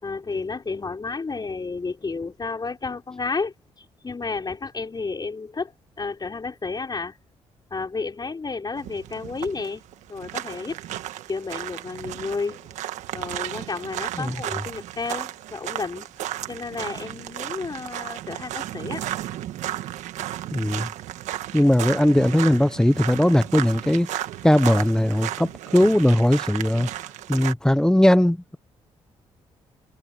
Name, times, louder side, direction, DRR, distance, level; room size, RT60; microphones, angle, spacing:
voice 1, 0.0-7.2 7.7-9.8 10.1-10.8 11.3-12.7 13.1-16.1 16.5-19.1, left 4 dB, 35° left, 5.1 m, -31 dB
sound 1, 8.8-27.5, right 13 dB, 85° right, 1.6 m, -34 dB
voice 2, 20.5-20.9 21.5-26.9 27.3-28.6, left 1 dB, 5° left, 0.8 m, -19 dB
supercardioid pair, 60°, 12 cm